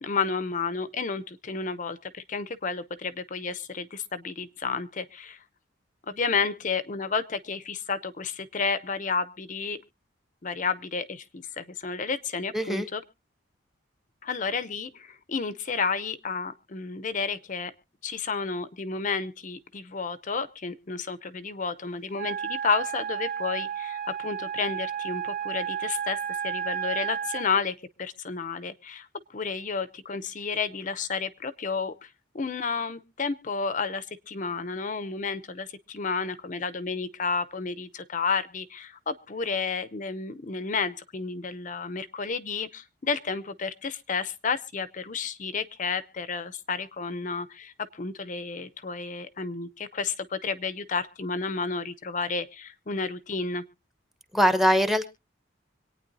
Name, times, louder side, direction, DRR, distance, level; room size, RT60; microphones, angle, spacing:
voice 1, 0.0-5.4 6.1-9.8 10.4-13.0 14.2-17.7 18.0-26.2 26.4-29.1 29.3-32.1 32.3-53.6, left 5 dB, 40° left, 13 dB, 0.6 m, -31 dB
voice 2, 12.5-12.9 54.3-55.1, equal, ahead, 12 dB, 0.7 m, -22 dB
Wind instrument woodwind instrument, 22.1-27.5, right 8 dB, 45° right, 0.8 m, -32 dB
25.5 x 9.2 x 2.6 m, 0.29 s
head